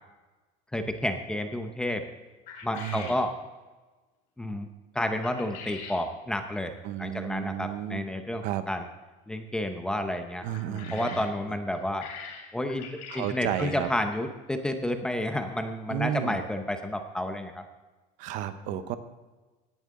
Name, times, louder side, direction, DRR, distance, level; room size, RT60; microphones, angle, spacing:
voice 1, 0.7-2.0 2.6-3.3 4.4-4.7 4.9-8.9 9.3-12.1 12.5-12.9 13.1-17.6 18.7-18.8, left 1 dB, 5° left, 6 dB, 0.6 m, -31 dB
sound 1, 2.5-3.2 5.2-6.0 10.4-11.3 11.7-14.0, left 6 dB, 60° left, 3.3 m, -43 dB
voice 2, 2.8-3.1 6.8-8.1 8.4-8.6 10.4-11.3 13.1-13.9 15.9-16.4 18.2-19.0, right 11 dB, 55° right, 11 dB, 0.9 m, -32 dB
17.0 x 10.5 x 3.7 m, 1.2 s
cardioid pair, 180°, 16 cm